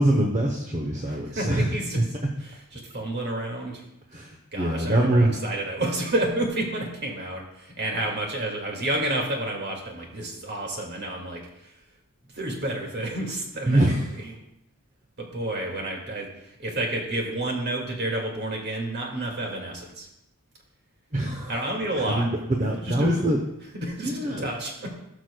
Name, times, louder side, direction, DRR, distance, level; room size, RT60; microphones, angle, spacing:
voice 1, 0.0-1.7 4.1-5.3 13.7-14.1 21.1-21.7 21.9-23.4 24.0-24.5, right 1 dB, 35° right, 1 dB, 0.8 m, -24 dB
voice 2, 1.1-2.0 2.7-3.8 4.5-11.7 12.3-13.9 14.2-14.3 15.2-16.3 16.6-20.1 21.5-22.2 22.7-23.2 23.7-24.9, right 1 dB, 50° right, 0 dB, 2.0 m, -30 dB
17.0 x 6.1 x 2.2 m, 0.85 s
head